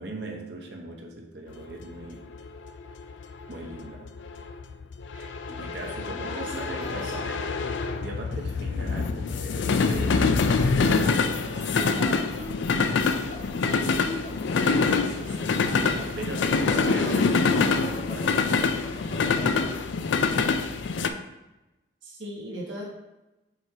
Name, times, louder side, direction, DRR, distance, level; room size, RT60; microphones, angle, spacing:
voice 1, 0.0-2.2 3.5-4.0 5.6-12.5 14.6-15.4 15.9-18.7 19.1-20.3, right 2 dB, 60° right, 2 dB, 0.8 m, -40 dB
sound 1, 1.6-21.1, left 4 dB, 75° left, 0.4 m, -25 dB
sound 2, 5.5-19.5, left 1 dB, 35° left, 0.7 m, -43 dB
voice 2, 6.2-7.3 10.8-11.1 11.7-12.5 13.7-14.1 14.6-15.5 16.8-17.0 22.0-22.8, right 1 dB, 90° right, -5 dB, 1.6 m, -39 dB
7.8 x 2.8 x 4.5 m, 1.0 s
head